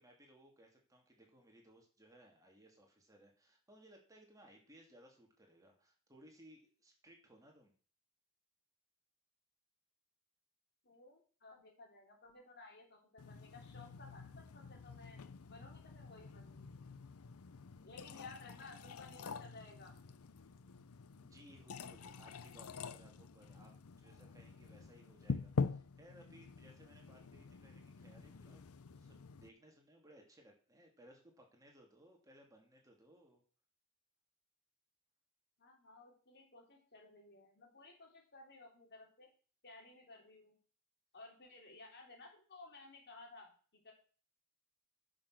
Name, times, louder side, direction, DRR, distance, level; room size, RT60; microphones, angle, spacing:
voice 1, 0.0-7.7 17.8-18.4 21.2-28.6 28.9-33.4, equal, 15° right, 1 dB, 2.9 m, -63 dB
voice 2, 10.8-15.2 15.5-16.7 17.8-20.0 35.6-39.3 39.6-40.6 41.1-43.9, left 3 dB, 50° left, 1 dB, 3.7 m, -57 dB
sound 1, 13.2-29.5, left 4 dB, 75° left, 0.6 m, -46 dB
10.0 x 6.4 x 6.4 m, 0.40 s
head